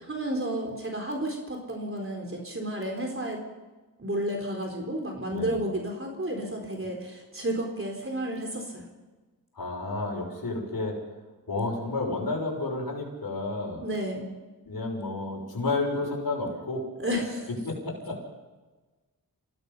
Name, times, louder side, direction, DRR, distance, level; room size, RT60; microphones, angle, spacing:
voice 1, 0.1-3.4 4.0-8.8 13.8-14.3 17.0-17.5, right 1 dB, 35° right, 1 dB, 4.0 m, -31 dB
voice 2, 9.5-11.0 11.5-13.8 14.7-16.9 17.6-18.2, left 2 dB, 75° left, 0 dB, 6.1 m, -31 dB
28.0 x 17.0 x 5.6 m, 1.2 s
wide cardioid pair, 80°, 36 cm